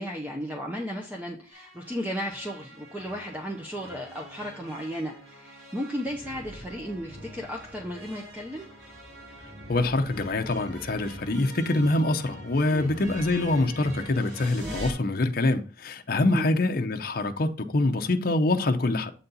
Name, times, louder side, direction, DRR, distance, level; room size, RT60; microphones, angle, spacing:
voice 1, 0.0-8.6 12.7-12.9 14.6-14.9 16.3-16.5, equal, 10° right, 0.7 m, -35 dB
sound 1, 1.5-14.9, equal, 65° right, 3.7 m, -44 dB
voice 2, 9.7-19.1, left 2 dB, 50° left, 0.7 m, -25 dB
8.0 x 4.1 x 4.0 m
head